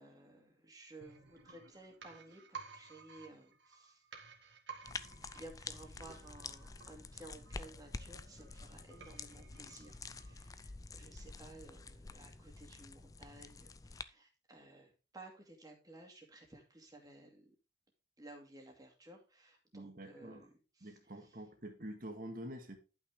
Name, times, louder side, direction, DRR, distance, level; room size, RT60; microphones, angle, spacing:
voice 1, 0.0-4.6 5.1-17.5 18.2-21.4, right 2 dB, 20° right, 2.3 m, -56 dB
sound 1, 1.0-10.7 11.0-11.1, right 5 dB, 65° right, 1.8 m, -55 dB
sound 2, 4.8-14.0, left 4 dB, 20° left, 0.4 m, -49 dB
voice 2, 19.7-20.4 20.8-22.8, right 1 dB, 45° right, 1.9 m, -47 dB
11.0 x 6.0 x 3.6 m
head